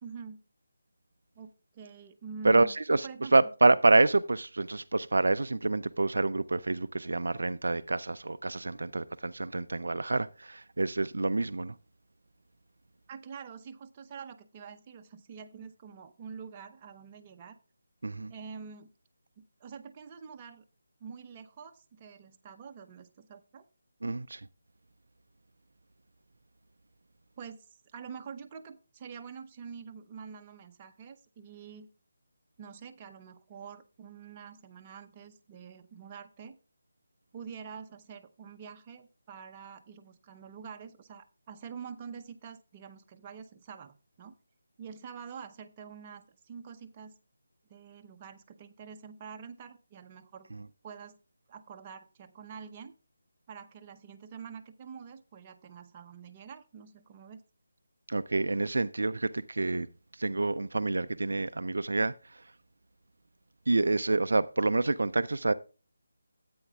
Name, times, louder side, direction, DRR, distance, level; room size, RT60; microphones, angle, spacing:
voice 1, 0.0-0.4 1.4-3.4 13.1-17.6 18.3-18.9 19.4-20.6 21.0-23.7 27.4-31.9 32.6-36.6 37.3-44.3 44.8-47.2 47.7-50.5 50.8-51.2 51.5-52.9 53.5-57.4, right 6 dB, 25° right, 0.7 m, -46 dB
voice 2, 2.4-11.8 18.0-18.3 24.0-24.5 50.5-50.6 58.1-59.9 60.1-62.5 63.7-65.5, right 2 dB, 65° right, 0.4 m, -27 dB
13.5 x 8.5 x 2.3 m
figure-of-eight pair, 155°, 0 cm